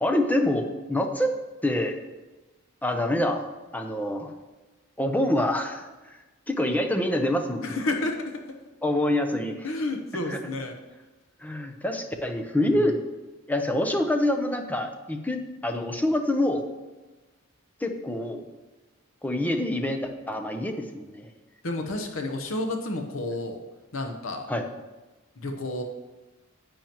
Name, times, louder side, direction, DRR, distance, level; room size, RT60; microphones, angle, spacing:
voice 1, 0.0-1.3 1.6-2.0 2.8-3.5 3.7-4.3 5.0-6.2 6.5-7.8 8.8-9.7 10.3-10.4 11.4-13.0 13.5-16.6 17.8-18.4 19.2-21.3 24.5-24.7, left 1 dB, 10° left, 4 dB, 0.7 m, -26 dB
voice 2, 7.6-8.4 9.6-10.7 12.7-12.9 21.6-23.6 23.9-24.5 25.4-25.8, left 2 dB, 65° left, 4 dB, 0.9 m, -30 dB
10.5 x 8.8 x 3.0 m, 1.2 s
head